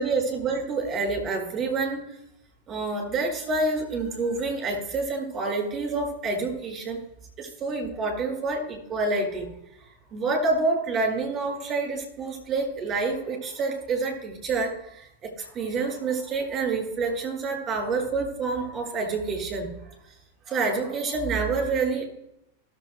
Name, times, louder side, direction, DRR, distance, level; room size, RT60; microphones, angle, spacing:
voice 1, 0.0-2.0 2.7-7.0 7.4-9.5 9.8-19.7 20.5-22.1, right 3 dB, 25° right, -1 dB, 4.5 m, -28 dB
18.0 x 7.4 x 3.3 m, 0.80 s
figure-of-eight pair, 90°, 0 cm